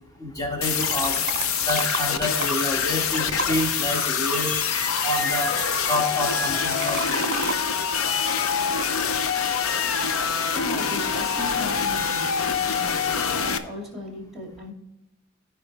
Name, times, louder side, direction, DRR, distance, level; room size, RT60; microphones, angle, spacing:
voice 1, 0.2-1.2 1.6-4.5 5.0-5.6 5.8-7.0, equal, 20° left, 0 dB, 1.7 m, -28 dB
sound 1, 0.6-13.6, left 6 dB, 75° left, 0.7 m, -25 dB
Fill (with liquid), 0.7-7.6, right 6 dB, 50° right, 0.6 m, -36 dB
voice 2, 10.5-14.7, left 1 dB, ahead, -1 dB, 2.3 m, -37 dB
14.5 x 4.9 x 3.4 m, 0.95 s
head